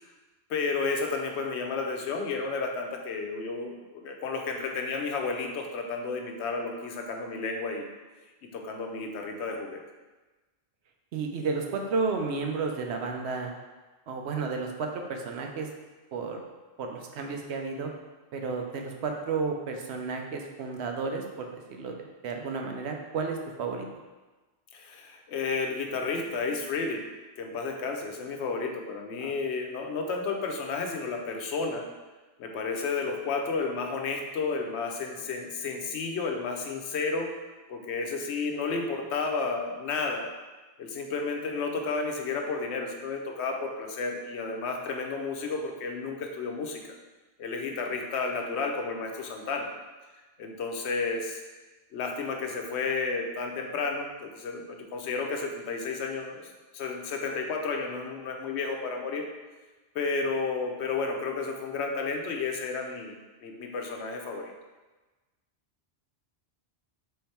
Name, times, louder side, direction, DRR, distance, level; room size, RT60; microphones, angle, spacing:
voice 1, 0.5-7.8 8.4-9.8 24.7-27.0 27.4-31.8 32.4-37.3 37.7-40.3 40.8-46.9 47.4-49.7 50.4-51.4 51.9-56.4 56.7-59.3 59.9-63.1 63.4-64.5, left 4 dB, 90° left, 3 dB, 0.9 m, -32 dB
voice 2, 11.1-13.5 14.1-15.7 16.1-16.4 16.8-17.9 18.3-23.9 29.2-29.3, right 4 dB, 85° right, 3 dB, 0.9 m, -32 dB
3.7 x 3.3 x 4.2 m, 1.2 s
omnidirectional pair, 1.1 m